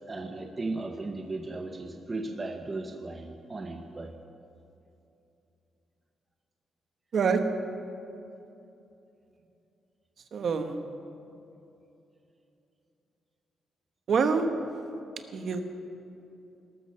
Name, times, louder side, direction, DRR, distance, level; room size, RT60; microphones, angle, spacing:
voice 1, 0.1-4.2, right 2 dB, 20° right, 4 dB, 0.8 m, -36 dB
voice 2, 7.1-7.4 10.3-10.8 14.1-14.5 15.3-15.6, right 5 dB, 50° right, 6 dB, 1.2 m, -25 dB
19.0 x 13.0 x 5.7 m, 2.8 s
cardioid pair, 155°, 0 cm